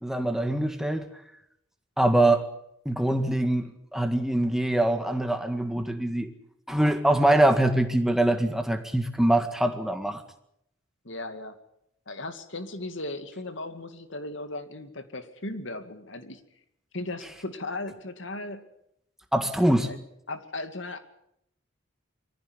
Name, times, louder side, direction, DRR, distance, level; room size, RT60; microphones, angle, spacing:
voice 1, 0.0-1.1 2.0-2.5 2.9-6.3 6.7-10.2 19.3-19.9, right 1 dB, ahead, 6 dB, 1.9 m, -23 dB
voice 2, 11.0-11.6 12.1-16.4 16.9-18.7 19.9-20.0 20.3-21.0, left 2 dB, 70° left, 9 dB, 2.4 m, -36 dB
24.0 x 15.0 x 9.9 m, 0.77 s
head